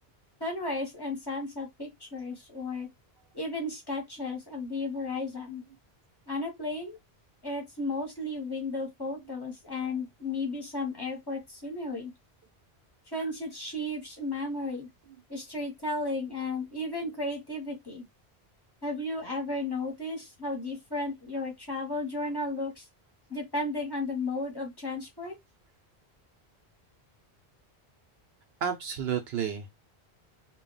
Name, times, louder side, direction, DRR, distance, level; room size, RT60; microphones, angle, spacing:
voice 1, 0.4-2.9 3.3-5.6 6.3-7.0 7.4-12.1 13.1-14.9 15.3-18.1 18.8-22.9 23.3-25.3, left 2 dB, 25° left, 0.9 m, -34 dB
voice 2, 28.6-29.7, right 8 dB, 75° right, 0.8 m, -31 dB
2.3 x 2.1 x 3.7 m
omnidirectional pair, 1.1 m